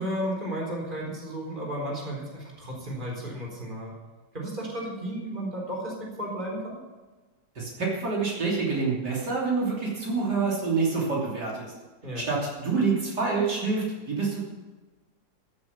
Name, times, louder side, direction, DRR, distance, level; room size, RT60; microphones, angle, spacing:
voice 1, 0.0-3.9 4.3-6.8 12.0-12.3, equal, 30° right, -2 dB, 4.2 m, -33 dB
voice 2, 7.6-11.7 12.1-14.4, right 4 dB, 75° right, -4 dB, 3.7 m, -27 dB
15.0 x 7.7 x 7.2 m, 1.3 s
omnidirectional pair, 1.8 m